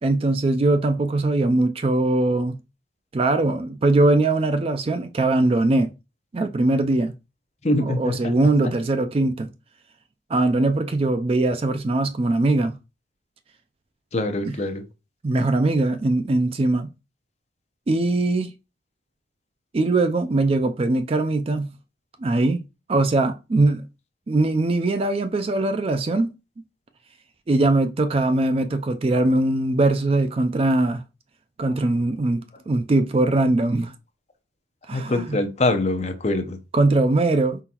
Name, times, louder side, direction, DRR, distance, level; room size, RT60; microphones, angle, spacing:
voice 1, 0.0-2.6 3.1-5.9 6.3-7.1 7.8-9.5 10.3-12.8 14.5-14.6 15.2-16.9 17.9-18.5 19.7-21.7 22.2-22.6 22.9-23.9 24.3-26.3 27.5-31.0 31.6-33.9 34.9-35.4 36.7-37.6, right 2 dB, 30° right, 0.3 m, -21 dB
voice 2, 7.6-8.3 14.1-14.9 34.9-36.6, left 2 dB, 35° left, 0.7 m, -24 dB
4.9 x 3.8 x 2.9 m
head